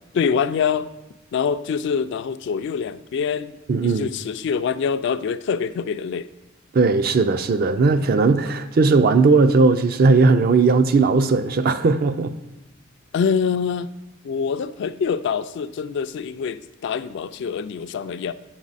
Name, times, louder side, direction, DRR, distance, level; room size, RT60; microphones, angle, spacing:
voice 1, 0.1-0.9 1.3-6.3 13.1-13.9 14.2-18.3, left 6 dB, 60° left, 0.3 m, -25 dB
voice 2, 3.7-4.1 6.7-12.3, right 4 dB, 45° right, 0.4 m, -17 dB
8.6 x 6.1 x 4.0 m
head